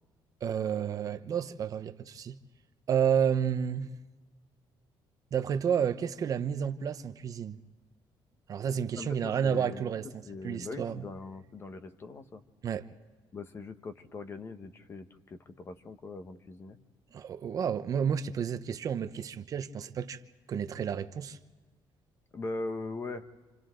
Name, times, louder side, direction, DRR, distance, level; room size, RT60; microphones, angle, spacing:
voice 1, 0.4-2.3 2.9-3.9 5.3-7.6 8.5-11.0 12.6-12.9 17.1-20.2 20.5-21.4, right 8 dB, 40° right, 0.9 m, -31 dB
voice 2, 9.0-9.9 10.3-12.4 13.3-16.8 22.3-23.2, left 3 dB, 30° left, 1.1 m, -41 dB
28.0 x 27.5 x 3.9 m
cardioid pair, 165°, 9 cm